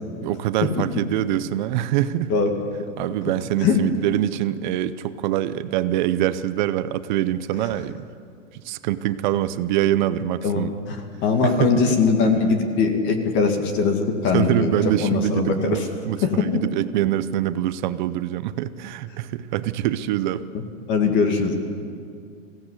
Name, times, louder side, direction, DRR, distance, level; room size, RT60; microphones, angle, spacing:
voice 1, 0.2-2.3 3.0-8.0 8.5-10.7 11.4-12.0 14.3-20.5, right 12 dB, 40° right, 14 dB, 0.7 m, -24 dB
voice 2, 10.4-11.0 11.2-14.7 15.0-15.8 16.2-16.3 20.5-21.6, left 5 dB, 30° left, 5 dB, 2.0 m, -21 dB
21.0 x 16.5 x 8.2 m, 2.3 s
hypercardioid pair, 150°, 37 cm